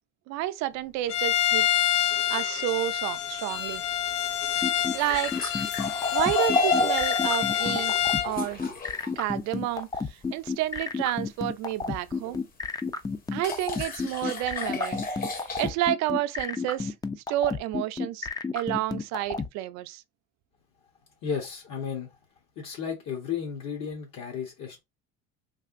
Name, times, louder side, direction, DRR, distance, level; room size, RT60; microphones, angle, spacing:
voice 1, 0.3-1.7 2.3-3.8 4.9-5.4 6.1-7.9 8.2-8.7 9.2-12.4 13.3-15.0 15.3-16.9 17.3-18.3 18.5-20.0, right 14 dB, 65° right, 0.5 m, -30 dB
Bowed string instrument, 1.1-8.3, left 10 dB, 85° left, 0.6 m, -27 dB
sound 1, 3.5-9.1 12.2-12.3 13.4-15.7, left 2 dB, 30° left, 0.8 m, -31 dB
sound 2, 4.6-19.5, left 4 dB, 15° left, 0.4 m, -30 dB
voice 2, 21.2-22.1 22.6-24.8, left 7 dB, 60° left, 1.1 m, -33 dB
3.3 x 2.7 x 2.5 m
supercardioid pair, 100°, 30 cm